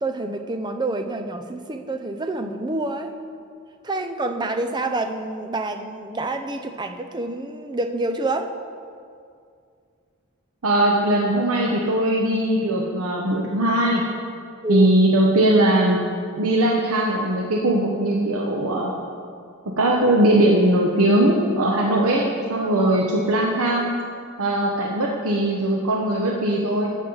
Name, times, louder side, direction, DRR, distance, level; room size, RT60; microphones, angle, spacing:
voice 1, 0.0-3.1 3.8-8.5 14.6-14.9 22.6-23.0, right 2 dB, 20° right, 6 dB, 0.5 m, -27 dB
voice 2, 10.6-14.0 14.7-16.1 16.4-18.9 19.8-24.0 24.4-26.9, right 1 dB, 90° right, -1 dB, 0.9 m, -20 dB
15.0 x 7.4 x 3.9 m, 2.3 s
head